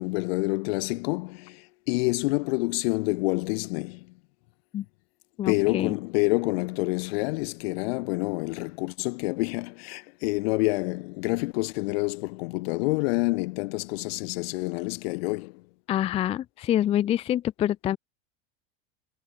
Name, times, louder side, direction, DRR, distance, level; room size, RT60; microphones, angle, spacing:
voice 1, 0.0-4.1 5.4-15.6, left 26 dB, 60° left, 1.6 m, -28 dB
voice 2, 5.4-6.0 15.9-18.0, left 11 dB, 15° left, 0.6 m, -26 dB
supercardioid pair, 180°, 34 cm